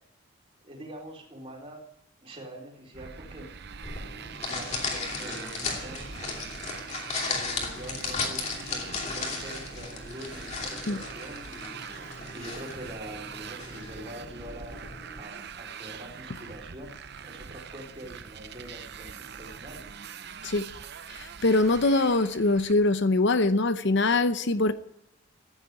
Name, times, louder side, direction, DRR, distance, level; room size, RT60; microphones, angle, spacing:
voice 1, 0.6-1.9 2.2-3.6 4.5-6.5 7.3-11.7 12.3-14.9 15.2-19.9, right 1 dB, 25° right, 4.0 m, -44 dB
Motorcycle, 2.9-22.7, right 6 dB, 50° right, 0.7 m, -43 dB
sound 1, 3.8-15.2, left 4 dB, 30° left, 2.8 m, -36 dB
voice 2, 21.1-24.7, left 2 dB, 55° left, 0.7 m, -23 dB
15.0 x 10.0 x 9.6 m
head